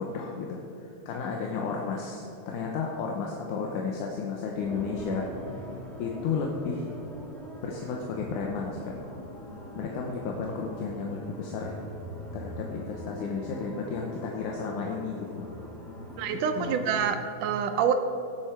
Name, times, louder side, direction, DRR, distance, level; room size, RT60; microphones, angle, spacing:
voice 1, 0.0-5.6 6.0-6.9 7.6-9.0 9.8-11.8 12.3-15.5 16.5-16.8, left 5 dB, 70° left, 0 dB, 2.2 m, -33 dB
sound 1, 4.6-17.2, equal, ahead, 0.4 m, -42 dB
voice 2, 16.2-17.9, right 7 dB, 75° right, 7 dB, 2.0 m, -27 dB
17.5 x 7.7 x 4.6 m, 3.0 s
omnidirectional pair, 4.0 m